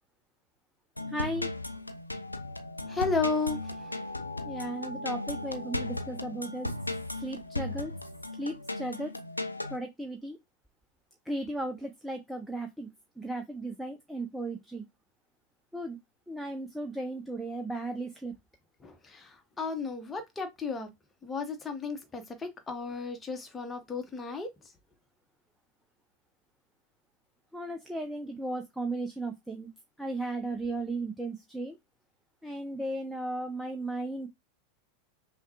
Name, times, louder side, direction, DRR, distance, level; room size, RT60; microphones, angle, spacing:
sound 1, 1.0-9.8, left 2 dB, 85° left, 0.5 m, -36 dB
voice 1, 1.1-1.5 4.4-6.7 7.2-7.9 8.4-9.1 9.7-10.4 11.3-12.9 13.2-14.9 15.7-16.0 16.3-18.3 27.5-29.7 30.0-31.8 32.4-34.3, right 2 dB, 5° right, 0.5 m, -35 dB
voice 2, 2.8-3.8 18.8-20.9 21.2-24.5, left 4 dB, 15° left, 0.9 m, -33 dB
5.6 x 2.2 x 2.8 m
figure-of-eight pair, 90°, 0 cm